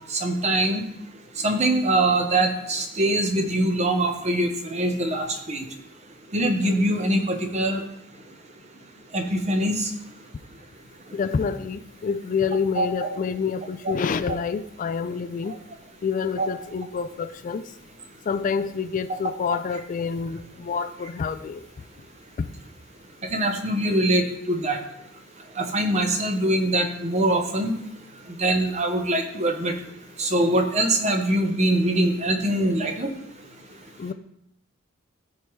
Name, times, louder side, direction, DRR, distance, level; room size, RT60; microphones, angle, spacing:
voice 1, 0.1-0.8 1.4-5.6 6.3-7.8 9.1-9.8 12.7-12.9 13.8-13.9 16.4-16.5 23.3-24.8 25.6-27.7 28.4-29.7 30.2-33.1, right 1 dB, 35° right, 5 dB, 0.9 m, -23 dB
voice 2, 11.1-15.5 16.0-17.6 18.3-21.6 22.4-22.5 34.0-34.1, left 5 dB, 40° left, 11 dB, 0.3 m, -27 dB
13.5 x 4.7 x 3.1 m, 0.81 s
head